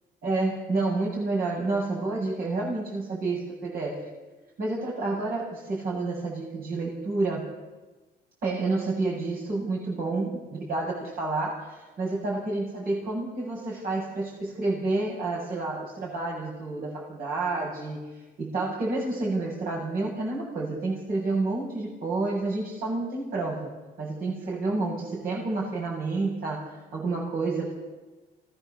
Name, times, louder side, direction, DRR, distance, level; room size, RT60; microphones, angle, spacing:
voice 1, 0.2-4.0 4.6-7.5 8.4-23.7 24.0-27.7, right 3 dB, 60° right, -3 dB, 7.7 m, -29 dB
27.0 x 20.5 x 7.1 m, 1.2 s
cardioid pair, 110°, 17 cm